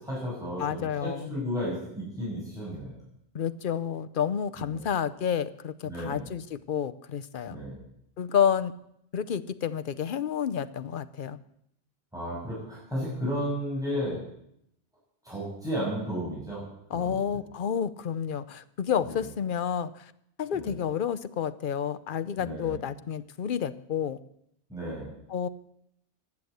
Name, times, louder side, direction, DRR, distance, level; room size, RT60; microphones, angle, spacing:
voice 1, 0.0-3.0 4.6-4.8 5.8-6.3 7.5-7.8 12.1-14.2 15.2-16.6 16.9-17.2 19.1-19.2 20.5-20.7 22.4-22.8 24.7-25.1, equal, 5° right, -7 dB, 7.0 m, -33 dB
voice 2, 0.6-1.3 3.3-7.6 8.2-8.7 9.1-11.4 16.9-20.1 20.4-24.2 25.3-25.5, left 8 dB, 55° left, 14 dB, 0.9 m, -30 dB
15.5 x 10.0 x 8.0 m, 0.75 s
omnidirectional pair, 1.1 m